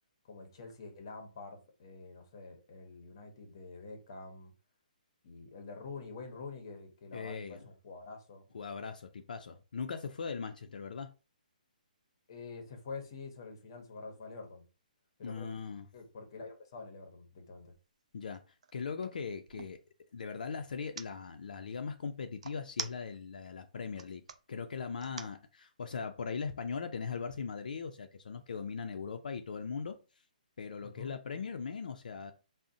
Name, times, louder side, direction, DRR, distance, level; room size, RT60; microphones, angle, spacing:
voice 1, 0.2-4.5 5.2-8.5 12.3-14.6 15.2-15.5 15.9-17.7 30.8-31.2, left 4 dB, 30° left, 0.6 m, -47 dB
voice 2, 7.1-7.6 8.5-11.1 15.2-15.9 18.1-19.8 20.1-24.2 24.5-30.0 30.6-32.3, left 5 dB, 65° left, 0.3 m, -39 dB
sound 1, 17.6-17.8 18.2-19.8 20.7-21.1 22.4-23.4 23.8-24.4 25.0-25.4, right 6 dB, 45° right, 0.3 m, -43 dB
3.7 x 2.0 x 2.5 m
hypercardioid pair, 175°, 5 cm